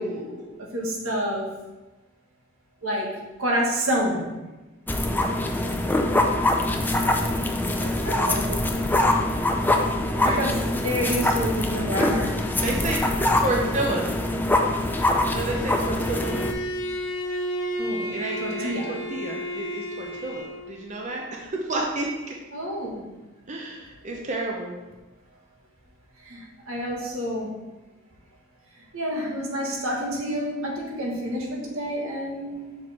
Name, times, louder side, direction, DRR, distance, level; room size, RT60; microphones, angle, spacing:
voice 1, 0.0-1.5 2.8-4.3 8.0-8.6 10.2-12.4 17.8-19.0 22.5-23.0 26.2-27.5 28.9-32.8, equal, 80° right, -2 dB, 1.5 m, -29 dB
sound 1, 4.9-16.5, left 1 dB, 10° left, 0.4 m, -24 dB
voice 2, 12.6-13.0 13.4-14.1 15.3-16.4 18.0-22.3 23.5-24.8, right 2 dB, 35° right, -1 dB, 0.6 m, -30 dB
Bowed string instrument, 16.0-20.8, equal, 60° left, 0.8 m, -32 dB
6.3 x 4.8 x 4.2 m, 1.1 s
head